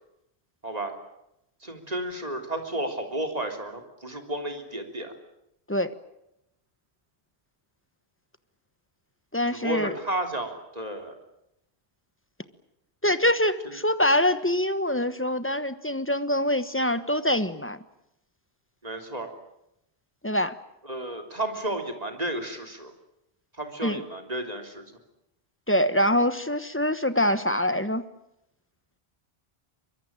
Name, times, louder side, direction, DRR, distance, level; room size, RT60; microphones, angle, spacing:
voice 1, 1.6-5.1 9.5-11.2 18.8-19.3 20.8-22.9 23.5-24.9, right 1 dB, 35° right, 5 dB, 3.6 m, -32 dB
voice 2, 9.3-9.9 13.0-17.8 20.2-20.6 23.8-24.0 25.7-28.0, left 1 dB, 10° left, 12 dB, 1.1 m, -24 dB
24.0 x 23.0 x 9.0 m, 0.83 s
omnidirectional pair, 1.1 m